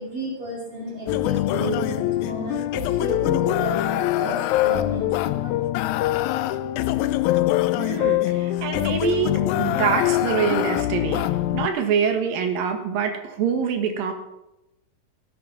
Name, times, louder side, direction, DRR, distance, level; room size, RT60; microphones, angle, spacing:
voice 1, 0.0-5.6, equal, 45° right, -3 dB, 3.1 m, -32 dB
sound 1, 1.1-11.7, left 14 dB, 85° left, 1.7 m, -23 dB
voice 2, 7.8-9.3 9.6-11.3 11.5-14.1, right 7 dB, 85° right, 5 dB, 3.3 m, -25 dB
18.0 x 8.8 x 5.7 m, 0.92 s
omnidirectional pair, 4.0 m